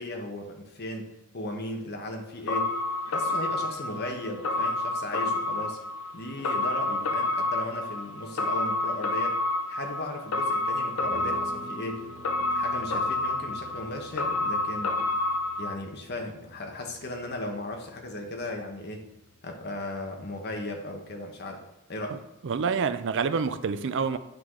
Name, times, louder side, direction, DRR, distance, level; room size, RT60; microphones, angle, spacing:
voice 1, 0.0-2.8 3.1-5.8 6.1-9.4 9.7-12.1 12.5-15.0 15.6-19.1 19.4-21.6 21.9-22.2, left 1 dB, 45° left, 1.0 m, -36 dB
sound 1, 2.5-15.7, left 2 dB, 65° left, 0.6 m, -29 dB
Guitar, 11.0-20.3, equal, 35° right, 1.6 m, -49 dB
voice 2, 22.4-24.2, right 5 dB, 55° right, 0.4 m, -27 dB
9.0 x 4.6 x 3.7 m
head